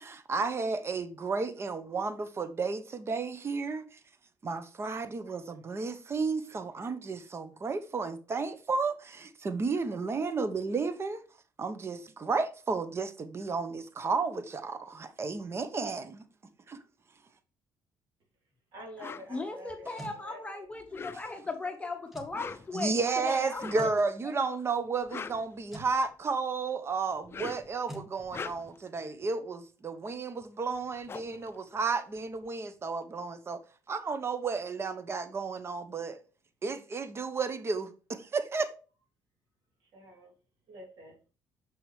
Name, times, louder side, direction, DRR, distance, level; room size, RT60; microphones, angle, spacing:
voice 1, 0.0-3.8 4.4-11.2 11.6-16.2 16.7-16.8 22.7-33.6 33.9-36.2 36.6-38.7, right 4 dB, 35° right, 0.9 m, -32 dB
voice 2, 18.7-20.7 39.8-40.3 40.7-41.2, equal, 70° right, 3.0 m, -48 dB
sound 1, 19.0-19.3 20.8-21.5 22.2-22.8 23.6-23.9 24.9-26.1 27.1-27.8 28.2-28.9 30.4-30.5 30.7-32.4, left 6 dB, 30° left, 0.4 m, -43 dB
voice 3, 19.3-22.9 23.2-23.9, left 3 dB, 15° left, 0.9 m, -37 dB
sound 2, 19.7-20.2 22.1-22.4 23.8-24.0 25.7-26.0 27.9-28.1, right 1 dB, 5° right, 1.8 m, -44 dB
6.4 x 6.0 x 3.2 m
cardioid pair, 85°, 8 cm